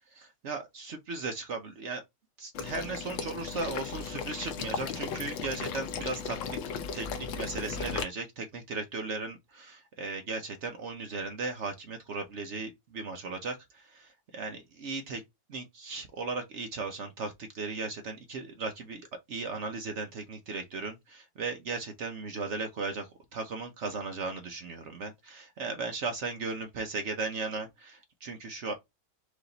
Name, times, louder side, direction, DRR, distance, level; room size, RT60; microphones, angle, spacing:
voice 1, 0.1-2.0 2.4-6.4 6.9-15.2 15.5-28.7, right 3 dB, 70° right, 0.6 m, -37 dB
Water / Liquid, 2.5-8.0, left 6 dB, 80° left, 1.5 m, -36 dB
5.0 x 2.6 x 3.9 m
omnidirectional pair, 2.1 m